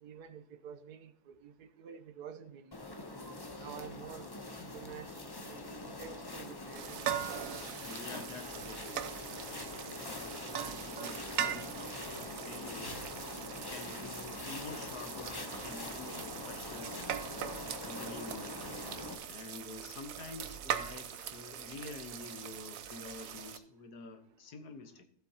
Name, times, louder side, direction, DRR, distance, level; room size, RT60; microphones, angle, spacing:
voice 1, 0.0-3.0 3.6-4.3 4.7-7.0, right 7 dB, 85° right, 1.3 m, -49 dB
sound 1, 2.7-19.1, left 2 dB, 20° left, 0.6 m, -44 dB
sound 2, 6.8-23.6, right 9 dB, 65° right, 1.0 m, -41 dB
voice 2, 7.8-9.1 9.3-12.9 13.7-17.4 17.8-18.6 18.9-25.0, left 4 dB, 85° left, 1.6 m, -48 dB
15.0 x 7.7 x 2.8 m
omnidirectional pair, 1.6 m